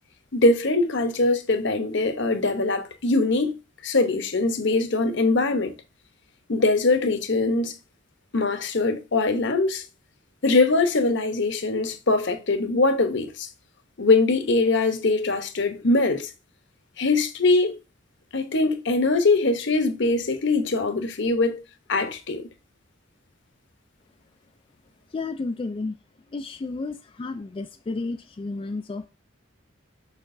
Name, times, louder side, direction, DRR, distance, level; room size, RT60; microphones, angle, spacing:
voice 1, 0.3-3.6 3.8-5.7 6.5-7.7 8.3-9.8 10.4-13.5 14.0-16.3 17.0-17.8 18.3-21.6 21.9-22.5, left 3 dB, 65° left, 0.9 m, -22 dB
voice 2, 25.1-26.0 26.3-29.1, left 3 dB, 25° left, 0.3 m, -32 dB
6.1 x 5.9 x 2.6 m
head